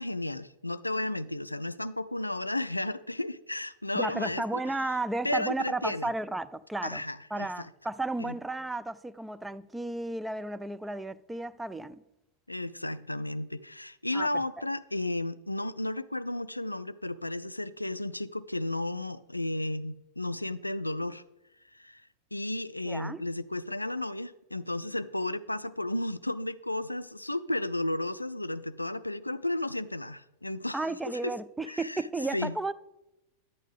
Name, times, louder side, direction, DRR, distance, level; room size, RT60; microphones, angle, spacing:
voice 1, 0.0-4.6 5.2-6.1 6.8-7.7 8.2-8.4 12.5-21.2 21.7-22.0 22.3-30.8 31.7-32.0 32.3-32.6, left 1 dB, 85° left, 0.3 m, -33 dB
voice 2, 3.9-7.0 7.3-12.0 14.1-14.3 22.9-23.2 30.7-32.7, right 2 dB, 5° right, 0.4 m, -33 dB
11.0 x 9.0 x 3.4 m
figure-of-eight pair, 90°, 0 cm